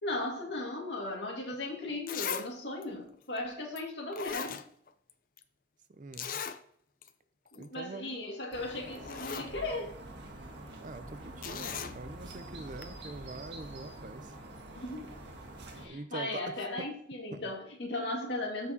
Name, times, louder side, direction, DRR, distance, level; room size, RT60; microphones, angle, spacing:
voice 1, 0.0-4.6 7.5-9.9 14.8-15.1 15.7-18.7, left 2 dB, 70° left, 1 dB, 1.9 m, -37 dB
Zipper (clothing), 1.5-1.6 2.1-2.5 2.8-2.9 3.8-3.9 4.1-5.1 5.4-5.5 6.1-6.6 7.0-7.1 7.5-7.7 8.5-8.6 8.9-9.5 11.4-11.9 12.8-12.9, left 7 dB, 45° left, 0.5 m, -38 dB
voice 2, 5.9-6.4 7.6-8.1 10.8-14.3 15.8-16.9 17.3-17.5, right 2 dB, 45° right, 11 dB, 0.5 m, -44 dB
sound 1, 8.5-15.9, right 1 dB, 70° right, 1.6 m, -46 dB
13.5 x 4.6 x 2.8 m, 0.65 s
head